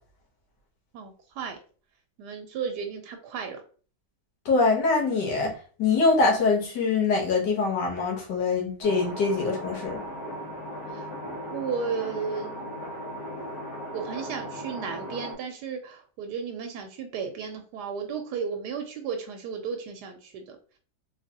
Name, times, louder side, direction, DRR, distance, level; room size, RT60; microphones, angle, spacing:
voice 1, 0.9-1.6 2.2-3.6 10.9-11.1 11.5-12.7 13.9-20.6, right 6 dB, 80° right, 5 dB, 1.1 m, -34 dB
voice 2, 4.5-10.0, left 4 dB, 85° left, -1 dB, 1.8 m, -24 dB
sound 1, 8.8-15.3, equal, 65° left, 1.7 m, -37 dB
3.6 x 3.2 x 2.7 m, 0.41 s
omnidirectional pair, 1.8 m